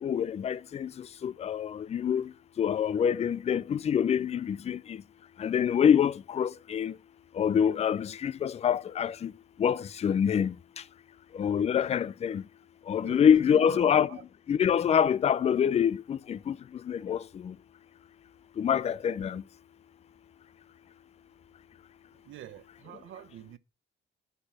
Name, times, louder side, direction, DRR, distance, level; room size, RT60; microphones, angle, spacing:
voice 1, 0.0-2.3 2.6-5.0 5.4-6.9 7.3-9.3 9.6-10.5 11.3-12.4 12.9-14.1 14.5-16.6 16.9-17.5 18.6-19.4, left 8 dB, 35° left, 0.4 m, -26 dB
voice 2, 13.0-14.2 22.2-23.6, right 11 dB, 75° right, 0.9 m, -46 dB
7.7 x 4.5 x 7.0 m
cardioid pair, 90°, 20 cm